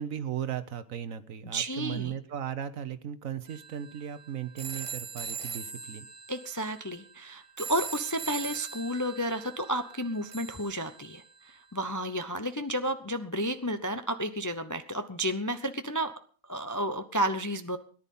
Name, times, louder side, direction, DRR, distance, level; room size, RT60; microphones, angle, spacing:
voice 1, 0.0-6.1, right 9 dB, 70° right, 13 dB, 1.2 m, -36 dB
voice 2, 1.4-2.2 6.3-16.1 16.5-17.8, right 1 dB, 20° left, 9 dB, 0.5 m, -32 dB
sound 1, 3.5-11.5, right 6 dB, 25° right, 0.8 m, -41 dB
18.0 x 10.5 x 5.4 m, 0.42 s
omnidirectional pair, 1.5 m